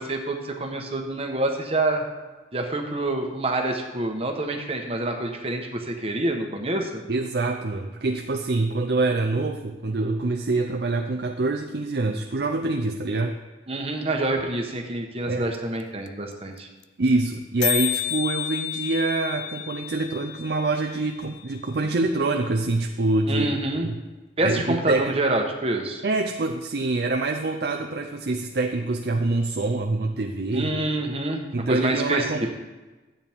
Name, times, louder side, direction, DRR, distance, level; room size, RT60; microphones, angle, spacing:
voice 1, 0.0-2.0 2.5-7.0 13.7-16.7 23.3-23.9 24.4-26.0 30.5-32.5, right 2 dB, 30° right, 3 dB, 1.1 m, -27 dB
voice 2, 7.1-13.4 15.3-15.6 17.0-23.5 23.8-24.0 24.4-25.2 26.0-30.8 31.5-32.4, right 2 dB, 60° right, 3 dB, 0.6 m, -25 dB
sound 1, 15.5-15.6 15.8-16.3 16.6-16.7 16.8-17.1 17.3-17.4 17.6-21.6, left 16 dB, 65° left, 0.4 m, -31 dB
13.0 x 8.8 x 3.6 m, 1.2 s
head